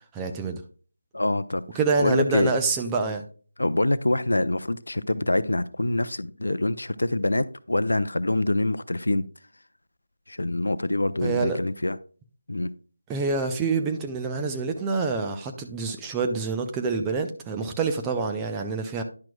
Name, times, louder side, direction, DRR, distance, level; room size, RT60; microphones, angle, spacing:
voice 1, 0.1-0.6 1.7-3.2 11.2-11.6 13.1-19.0, right 4 dB, 10° right, 0.5 m, -27 dB
voice 2, 1.1-2.5 3.6-9.3 10.3-12.0 12.5-12.7, left 1 dB, 65° left, 0.5 m, -25 dB
10.5 x 5.9 x 2.2 m
figure-of-eight pair, 160°, 0 cm